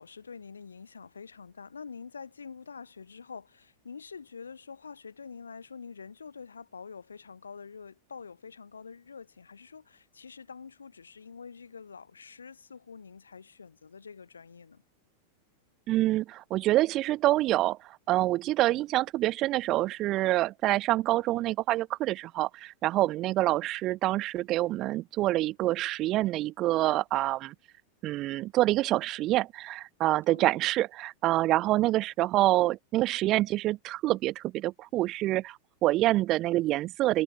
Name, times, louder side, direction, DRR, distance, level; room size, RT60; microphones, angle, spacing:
voice 1, 0.0-14.8 30.3-30.6, left 5 dB, 75° left, 3.1 m, -46 dB
voice 2, 15.9-17.8 18.1-27.5 28.0-37.2, right 16 dB, 35° right, 0.9 m, -26 dB
figure-of-eight pair, 90°, 0 cm